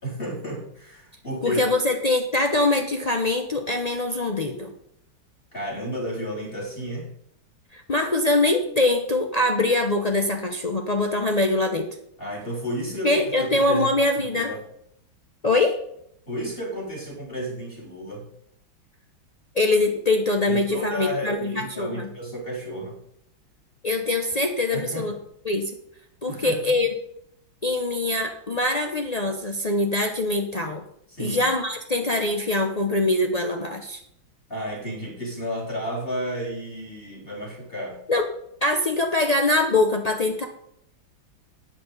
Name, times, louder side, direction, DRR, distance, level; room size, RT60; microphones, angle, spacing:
voice 1, 0.0-1.6 5.5-7.1 12.2-14.6 16.3-18.2 20.5-23.0 24.7-25.2 26.3-26.6 31.1-31.5 34.5-38.0, equal, 25° left, -4 dB, 4.2 m, -32 dB
voice 2, 1.4-4.7 7.7-11.9 13.0-14.5 15.4-15.8 19.5-22.1 23.8-25.1 25.4-25.7 26.2-26.9 27.6-30.8 31.2-34.0 38.1-38.2 38.6-40.4, left 2 dB, 65° left, 3 dB, 0.4 m, -23 dB
8.6 x 7.4 x 8.1 m, 0.74 s
omnidirectional pair, 2.2 m